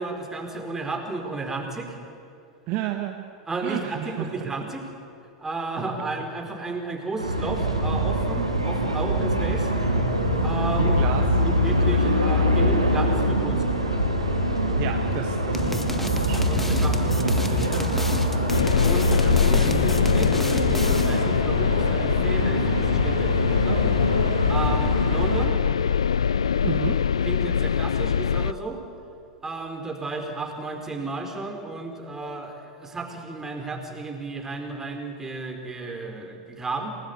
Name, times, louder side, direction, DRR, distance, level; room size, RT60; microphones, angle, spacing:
voice 1, 0.0-2.0 3.5-4.9 5.4-9.7 10.4-11.1 11.4-13.6 16.5-17.5 18.8-23.8 24.5-25.6 27.2-28.8 29.4-36.9, right 3 dB, 15° right, 3 dB, 4.5 m, -33 dB
voice 2, 2.7-3.3 3.6-4.3 10.8-11.3 11.8-12.3 14.8-16.4 17.2-18.5 19.5-19.8 26.6-27.0, right 11 dB, 45° right, 5 dB, 1.6 m, -32 dB
sound 1, 7.2-25.5, equal, 90° right, 3.4 m, -24 dB
sound 2, 15.5-21.3, left 1 dB, 5° left, 1.8 m, -31 dB
sound 3, 18.5-28.5, left 7 dB, 70° left, 0.5 m, -23 dB
28.0 x 19.0 x 8.5 m, 2.5 s
figure-of-eight pair, 85°, 3 cm